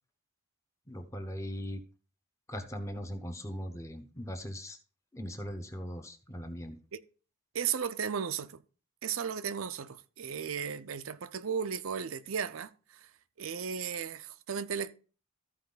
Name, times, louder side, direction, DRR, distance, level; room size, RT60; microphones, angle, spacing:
voice 1, 0.9-1.8 2.5-4.8 5.1-6.8, equal, 15° left, 0.9 m, -39 dB
voice 2, 7.5-8.6 9.0-13.1 13.4-14.9, right 7 dB, 75° right, 0.6 m, -35 dB
14.0 x 4.7 x 4.0 m
head